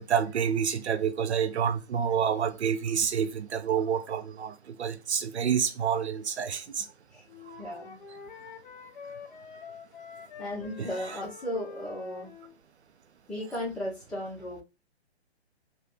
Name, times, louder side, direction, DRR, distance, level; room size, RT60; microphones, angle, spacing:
voice 1, 0.0-6.8 7.5-7.7 10.8-10.9, right 7 dB, 80° right, 0.5 m, -28 dB
Wind instrument woodwind instrument, 7.3-12.5, left 5 dB, 50° left, 0.5 m, -46 dB
voice 2, 7.6-8.0 10.2-12.3 13.3-14.6, left 1 dB, 5° left, 0.8 m, -35 dB
2.7 x 2.2 x 3.4 m
figure-of-eight pair, 130°, 33 cm